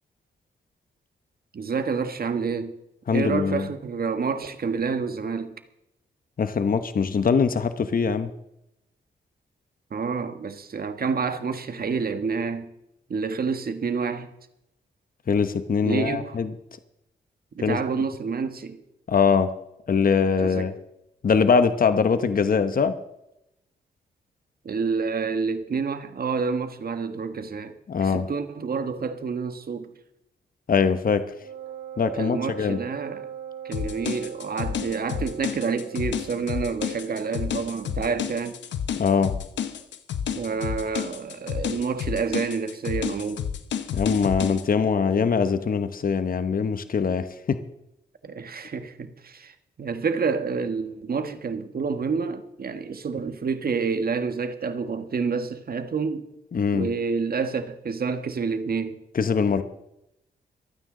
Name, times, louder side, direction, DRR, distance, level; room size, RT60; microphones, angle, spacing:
voice 1, 1.5-2.8 3.1-5.5 9.9-12.7 13.1-14.3 15.8-16.4 17.5-18.8 20.4-20.7 24.6-29.9 32.1-33.3 33.6-38.6 40.4-43.5 48.2-56.3 56.7-59.0, right 5 dB, 55° right, 1.6 m, -28 dB
voice 2, 3.1-3.7 6.4-8.3 15.3-16.5 17.6-17.8 19.1-19.5 19.9-20.7 21.2-22.9 27.9-28.3 30.7-31.2 32.0-32.8 39.0-39.3 43.9-47.6 56.5-56.9 59.1-59.6, left 5 dB, 50° left, 1.1 m, -22 dB
Wind instrument woodwind instrument, 31.4-38.0, right 9 dB, 75° right, 2.2 m, -40 dB
sound 1, 33.7-44.6, left 8 dB, 85° left, 1.0 m, -30 dB
25.0 x 9.4 x 3.9 m
cardioid pair, 55°, 18 cm